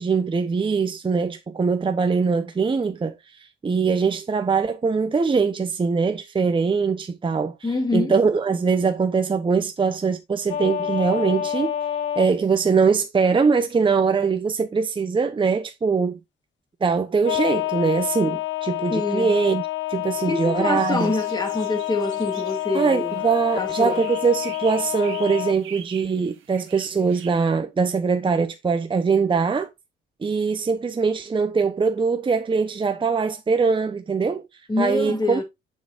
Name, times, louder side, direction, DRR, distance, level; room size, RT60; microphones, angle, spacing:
voice 1, 0.0-3.1 3.6-7.5 7.9-11.7 12.2-16.2 16.8-21.2 22.7-29.7 30.2-34.4 34.8-35.4, right 5 dB, 25° right, 0.8 m, -22 dB
voice 2, 7.6-8.2 18.9-19.3 20.3-23.2 23.6-24.0 34.7-35.4, left 2 dB, 20° left, 2.4 m, -25 dB
sound 1, 10.5-12.3 17.2-25.5, left 13 dB, 65° left, 0.7 m, -28 dB
sound 2, 20.8-27.4, right 8 dB, 85° right, 1.4 m, -44 dB
7.1 x 6.5 x 2.5 m
cardioid pair, 90°, 20 cm